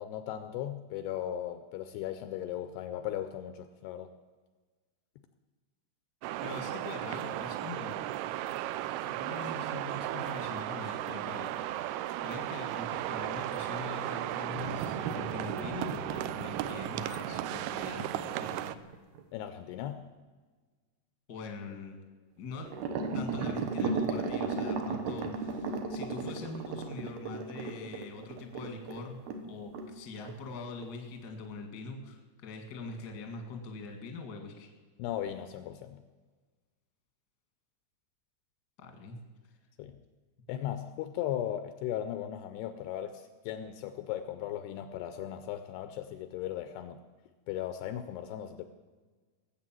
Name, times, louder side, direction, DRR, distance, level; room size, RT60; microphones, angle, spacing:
voice 1, 0.0-4.1 19.3-20.1 35.0-36.0 39.8-40.0 40.5-47.0 47.5-48.6, left 11 dB, 80° left, 9 dB, 2.5 m, -37 dB
sound 1, 6.2-18.8, right 13 dB, 85° right, 2.3 m, -36 dB
voice 2, 6.4-8.1 9.0-18.7 21.3-21.9 22.4-22.7 23.1-34.7 38.8-39.2, left 3 dB, 45° left, 3 dB, 1.3 m, -43 dB
sound 2, 14.6-19.2 22.6-29.5 29.7-29.9 30.3-30.4 30.8-30.9, right 4 dB, 70° right, 2.7 m, -36 dB
19.5 x 8.2 x 7.5 m, 1.4 s
omnidirectional pair, 5.2 m